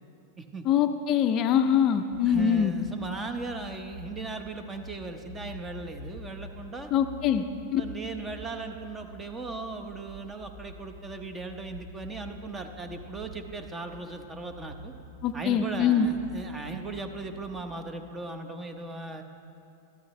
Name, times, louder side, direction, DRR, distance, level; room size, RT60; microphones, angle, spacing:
voice 1, 0.6-2.7 6.9-7.4 7.7-7.8 15.2-16.1, left 8 dB, 40° left, 8 dB, 0.4 m, -23 dB
sound 1, 2.1-18.1, equal, 55° right, 2.0 m, -47 dB
voice 2, 2.3-6.9 7.8-14.9 15.3-19.2, right 3 dB, 20° right, 6 dB, 0.9 m, -38 dB
13.5 x 12.5 x 3.2 m, 2.7 s
hypercardioid pair, 105°, 0 cm